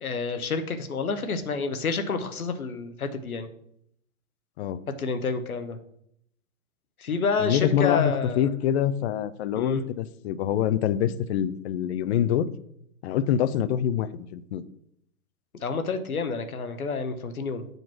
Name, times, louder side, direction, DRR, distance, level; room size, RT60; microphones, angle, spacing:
voice 1, 0.0-3.5 5.0-5.8 7.0-8.5 9.5-9.8 15.6-17.7, left 4 dB, 90° left, 8 dB, 0.9 m, -29 dB
voice 2, 7.4-12.5 13.0-14.6, left 10 dB, 50° left, 13 dB, 0.5 m, -25 dB
7.9 x 3.0 x 5.8 m, 0.72 s
hypercardioid pair, 110°, 42 cm